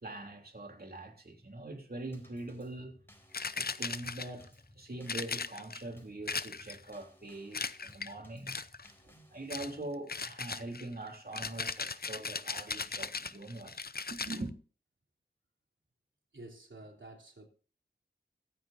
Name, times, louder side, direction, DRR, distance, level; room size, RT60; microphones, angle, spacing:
voice 1, 0.0-2.9 3.5-4.5 4.8-8.6 9.0-13.8 14.1-14.5, right 2 dB, 50° right, 3.2 m, -43 dB
Drum kit / Snare drum / Bass drum, 2.1-9.8, equal, 10° left, 4.4 m, -60 dB
sound 1, 3.3-4.5 5.1-5.8 6.3-6.9 7.5-8.1 8.5-8.9 9.5-9.8 10.1-14.4, left 4 dB, 55° left, 0.6 m, -38 dB
voice 2, 16.3-17.5, right 2 dB, 80° right, 3.4 m, -50 dB
23.5 x 9.3 x 2.7 m
wide cardioid pair, 45°, 19 cm